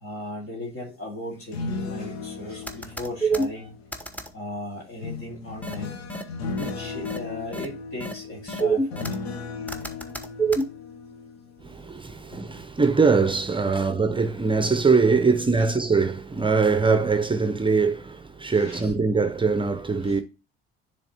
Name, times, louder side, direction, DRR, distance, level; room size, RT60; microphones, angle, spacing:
voice 1, 0.0-3.7 4.3-6.0 6.6-9.1 13.7-13.9 15.6-15.7 18.5-18.9 20.0-20.2, left 1 dB, 45° left, 2.2 m, -37 dB
sound 1, 1.3-4.2 5.0-11.9 12.3-12.6, left 4 dB, 85° left, 0.8 m, -36 dB
sound 2, 2.7-3.5 3.9-4.3 5.6-5.8 6.1-6.2 6.6-6.7 7.1-7.2 7.5-7.7 8.0-8.1 8.5-9.2 9.7-10.6, right 4 dB, 5° left, 1.0 m, -25 dB
voice 2, 11.6-20.2, right 4 dB, 15° right, 0.7 m, -22 dB
10.5 x 3.5 x 2.9 m
hypercardioid pair, 60°, 31 cm